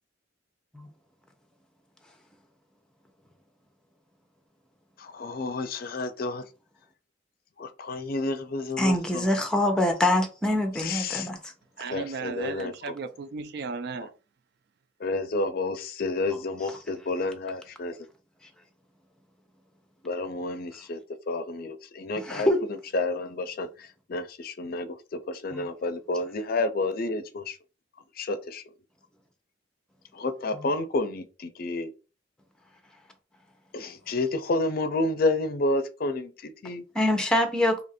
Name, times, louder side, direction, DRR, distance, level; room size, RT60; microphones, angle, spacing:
voice 1, 5.0-6.4 7.6-9.3 10.8-11.3 11.9-12.7 15.0-17.9 20.0-21.0 21.3-22.5 22.9-23.7 24.1-27.5 28.2-28.6 30.2-31.9 33.7-36.8, left 2 dB, 50° left, 0.4 m, -30 dB
voice 2, 8.8-11.5 16.6-16.8 20.7-20.8 22.2-22.6 25.5-25.6 30.5-30.7 36.9-37.8, left 1 dB, 5° left, 0.7 m, -25 dB
voice 3, 11.8-14.1, right 4 dB, 60° right, 0.3 m, -35 dB
2.8 x 2.5 x 4.1 m
head